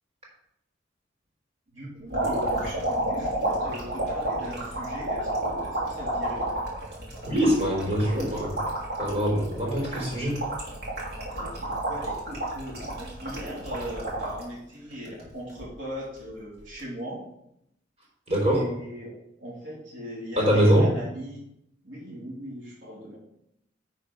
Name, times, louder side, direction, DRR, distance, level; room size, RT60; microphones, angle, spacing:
voice 1, 1.7-6.5 11.4-17.2 18.5-21.4 21.8-23.2, equal, 80° right, -5 dB, 3.1 m, -39 dB
sound 1, 2.1-14.4 14.9-15.6 16.6-16.8, right 1 dB, 55° right, 3.3 m, -31 dB
voice 2, 7.2-8.6 9.0-10.4 18.3-18.7 20.4-20.9, equal, 35° right, -5 dB, 4.1 m, -23 dB
10.5 x 5.0 x 5.4 m, 0.79 s
head